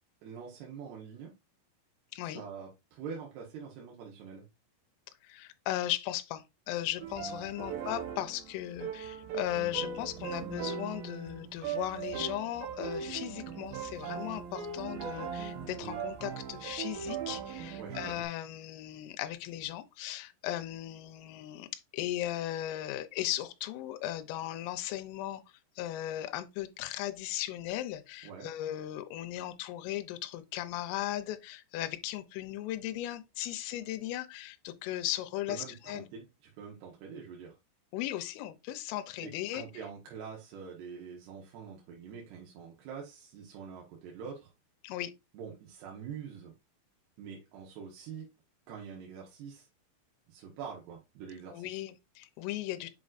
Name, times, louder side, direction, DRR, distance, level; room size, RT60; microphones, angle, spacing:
voice 1, 0.2-1.3 2.3-4.5 7.6-7.7 13.1-13.2 17.8-18.1 28.2-28.5 35.5-36.3 36.6-37.6 39.2-44.5 45.3-46.5 47.2-48.3 48.7-49.7 50.3-51.8, right 6 dB, 70° right, 2.9 m, -45 dB
voice 2, 2.1-2.4 5.2-25.4 25.8-36.1 37.9-39.6 44.8-45.1 51.5-52.9, left 14 dB, 85° left, 3.3 m, -37 dB
sound 1, 7.0-18.2, right 7 dB, 85° right, 2.1 m, -39 dB
7.6 x 5.2 x 2.5 m
omnidirectional pair, 5.7 m